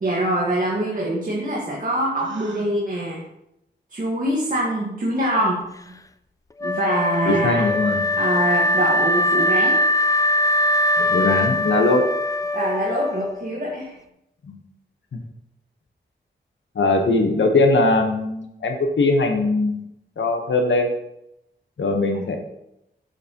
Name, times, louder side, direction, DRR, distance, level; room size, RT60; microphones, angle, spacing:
voice 1, 0.0-3.2 3.9-5.9 6.6-7.7 8.2-9.8 12.5-14.0, right 1 dB, 45° right, -4 dB, 1.6 m, -24 dB
Gasp, 2.2-2.7, right 2 dB, 90° right, 1.1 m, -39 dB
Wind instrument woodwind instrument, 6.6-13.6, left 1 dB, 20° left, 0.4 m, -21 dB
voice 2, 7.3-8.0 11.0-12.0 14.5-14.6 15.1-15.2 16.7-19.8 20.2-20.9 21.8-22.4, left 2 dB, 80° left, 4 dB, 1.1 m, -20 dB
9.0 x 6.7 x 3.0 m, 0.82 s
wide cardioid pair, 90°, 19 cm